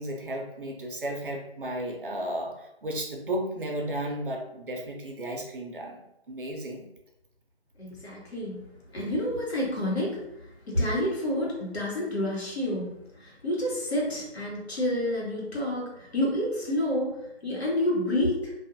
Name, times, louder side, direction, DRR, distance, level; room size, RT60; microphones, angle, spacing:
voice 1, 0.0-6.0 6.3-6.9, right 1 dB, 55° right, 1 dB, 0.6 m, -34 dB
voice 2, 7.8-18.5, left 1 dB, 80° left, -3 dB, 1.3 m, -29 dB
2.6 x 2.4 x 2.6 m, 0.84 s
figure-of-eight pair, 170°, 32 cm